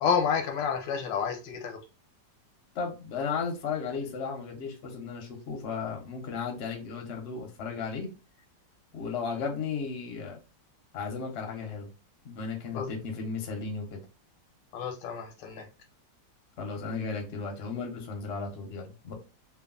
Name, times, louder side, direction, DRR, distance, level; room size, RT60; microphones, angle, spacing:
voice 1, 0.0-1.8 12.7-12.9 14.7-15.7, left 6 dB, 85° left, 1.3 m, -29 dB
voice 2, 2.7-8.1 8.9-10.4 10.9-11.9 12.2-14.0 16.6-19.1, left 5 dB, 55° left, 0.7 m, -35 dB
3.0 x 2.3 x 2.4 m
omnidirectional pair, 2.0 m